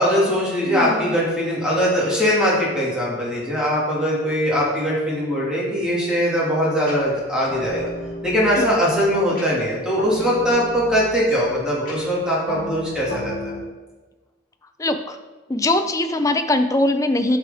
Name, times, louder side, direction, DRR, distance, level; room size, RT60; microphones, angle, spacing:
voice 1, 0.0-7.9 8.2-13.5, equal, 5° right, -6 dB, 2.0 m, -21 dB
voice 2, 0.7-1.1 8.6-8.8 14.8-15.2 15.5-17.4, left 2 dB, 15° left, 8 dB, 0.4 m, -21 dB
sound 1, 6.9-13.6, left 1 dB, 45° left, 2.1 m, -34 dB
9.4 x 6.0 x 3.5 m, 1.3 s
head